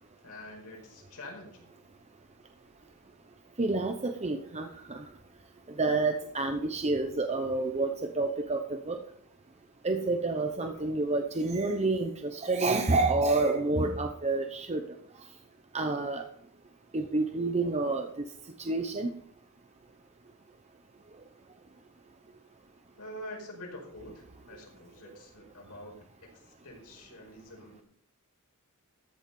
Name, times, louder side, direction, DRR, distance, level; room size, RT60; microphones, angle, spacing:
voice 1, 0.2-1.7 23.0-27.8, left 1 dB, 85° left, 0 dB, 5.1 m, -46 dB
voice 2, 3.6-5.0 5.8-9.0 9.8-14.8 15.7-16.2 16.9-18.1 18.7-19.1, right 3 dB, 30° right, 5 dB, 0.8 m, -28 dB
14.0 x 7.1 x 5.4 m, 0.64 s
head